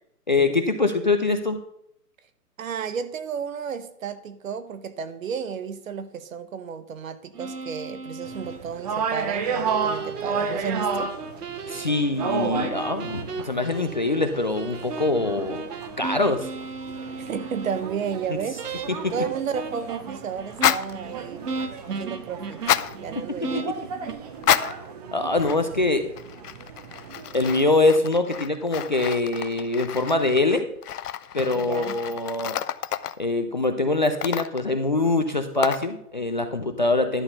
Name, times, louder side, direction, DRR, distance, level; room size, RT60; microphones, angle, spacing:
voice 1, 0.3-1.6 11.7-15.6 16.0-16.5 18.3-18.4 18.9-19.1 23.3-23.6 25.1-26.1 27.3-30.7 31.3-32.6 33.2-37.2, left 2 dB, 35° left, 7 dB, 0.4 m, -23 dB
voice 2, 2.6-11.1 17.2-21.5 21.8-22.7 23.0-23.8 31.5-32.0, right 7 dB, 60° right, 11 dB, 1.1 m, -32 dB
sound 1, 7.3-8.6 9.6-17.8 18.6-19.2 19.5-24.1, right 4 dB, 85° right, 1.1 m, -35 dB
sound 2, 8.2-27.6, right 5 dB, 25° right, 0.7 m, -34 dB
sound 3, 20.5-20.9 22.5-23.0 24.4-24.9 25.4-25.9 26.2-33.3 34.0-34.7 35.6-35.9, left 10 dB, 75° left, 0.6 m, -29 dB
11.5 x 4.1 x 6.6 m, 0.74 s
hypercardioid pair, 145°, 46 cm